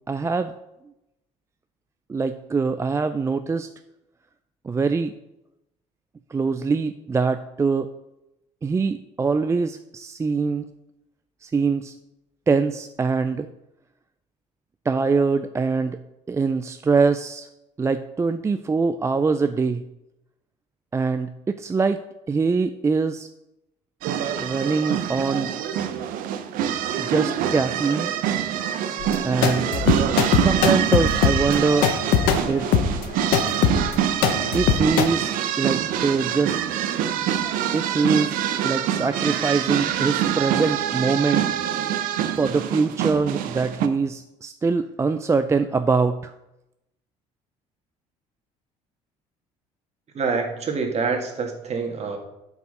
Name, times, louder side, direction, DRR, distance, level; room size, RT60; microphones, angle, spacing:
voice 1, 0.1-0.5 2.1-3.7 4.6-5.1 6.3-7.9 8.6-10.7 11.4-11.9 12.5-13.5 14.9-16.0 16.3-17.5 17.8-19.8 20.9-22.0 22.3-23.3 24.4-25.5 27.0-28.1 29.2-29.8 30.3-32.0 32.5-32.7 34.5-36.6 37.7-41.5 42.4-46.3, right 4 dB, 20° right, 10 dB, 0.4 m, -23 dB
sound 1, 24.0-43.9, right 10 dB, 70° right, 0.6 m, -25 dB
sound 2, 29.0-35.1, left 8 dB, 75° left, 0.9 m, -21 dB
voice 2, 50.1-52.2, right 4 dB, 45° right, 3 dB, 1.8 m, -26 dB
7.9 x 4.8 x 5.2 m, 0.90 s
supercardioid pair, 80°, 15 cm